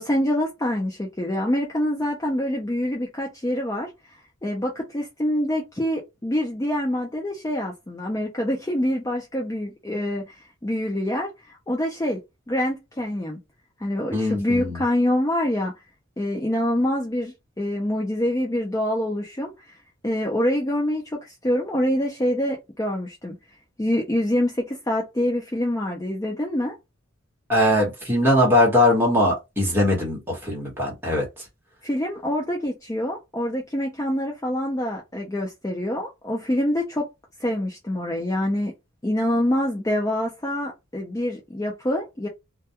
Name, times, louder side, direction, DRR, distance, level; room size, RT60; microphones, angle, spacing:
voice 1, 0.0-12.2 12.5-13.4 13.8-15.7 16.2-19.8 20.0-23.3 23.8-26.7 31.8-37.1 37.4-38.7 39.0-42.3, left 1 dB, 15° left, 0.4 m, -26 dB
voice 2, 14.1-14.8 27.5-31.2, left 1 dB, 10° right, 1.0 m, -20 dB
2.3 x 2.2 x 2.7 m
head